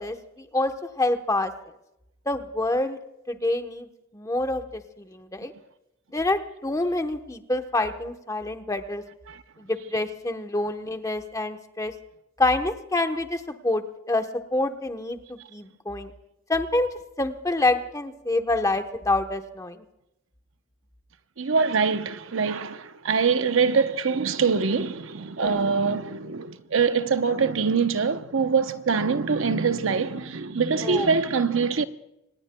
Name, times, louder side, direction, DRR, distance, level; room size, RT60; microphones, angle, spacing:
voice 1, 0.0-1.5 2.3-3.0 3.3-5.5 6.1-9.0 9.6-11.9 12.4-16.1 16.5-16.9 17.2-19.8 25.4-25.6 30.8-31.1, left 2 dB, 15° left, 1.0 m, -27 dB
voice 2, 21.4-31.8, right 5 dB, 65° right, 0.8 m, -24 dB
26.5 x 19.5 x 2.2 m
head